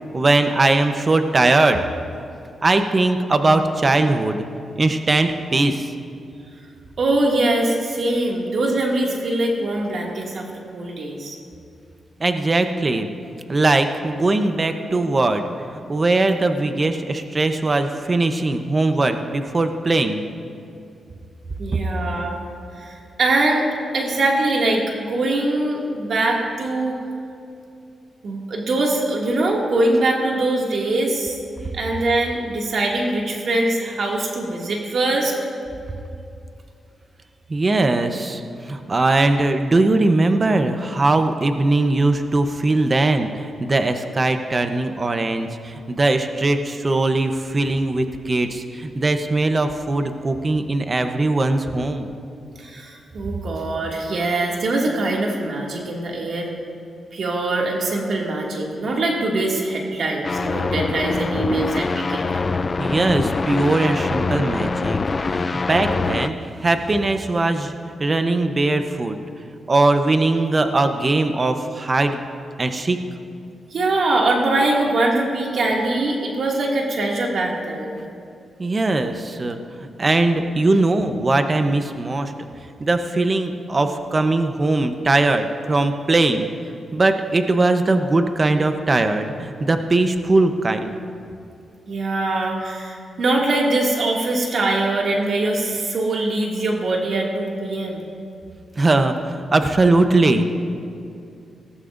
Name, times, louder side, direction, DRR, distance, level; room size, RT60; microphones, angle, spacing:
voice 1, 0.1-1.8 2.6-4.4 4.8-5.8 12.2-13.1 13.5-15.4 15.7-20.2 37.5-38.4 38.7-52.1 62.8-65.0 65.3-67.7 68.0-69.2 69.7-72.2 72.6-73.0 78.6-79.6 80.0-82.3 82.8-86.5 86.9-90.9 98.8-100.5, right 2 dB, 35° right, 7 dB, 0.9 m, -20 dB
voice 2, 7.0-11.4 21.6-22.4 22.8-23.7 23.9-27.0 28.2-31.4 31.7-35.3 52.6-56.5 57.1-62.3 73.7-78.0 91.9-98.0, right 2 dB, 65° right, -1 dB, 2.3 m, -22 dB
sound 1, 60.2-66.3, left 4 dB, 35° left, 0.4 m, -24 dB
19.0 x 14.0 x 2.6 m, 2.5 s
cardioid pair, 90°, 0 cm